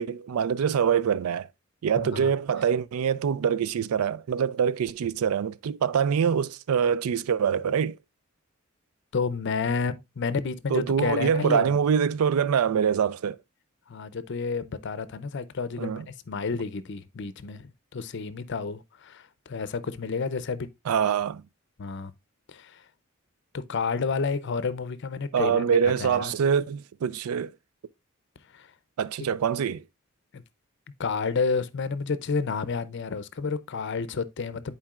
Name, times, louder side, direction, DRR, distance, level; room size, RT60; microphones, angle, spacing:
voice 1, 0.0-1.5 1.8-8.0 10.7-13.4 15.8-16.1 20.9-21.4 25.3-27.5 29.0-29.8, right 7 dB, 90° right, 0.4 m, -25 dB
voice 2, 9.1-11.7 13.9-20.7 21.8-22.1 22.5-22.8 23.5-25.6 26.0-26.3 28.5-28.7 30.3-30.4 31.0-34.8, left 4 dB, 55° left, 0.5 m, -30 dB
10.5 x 4.5 x 2.3 m
head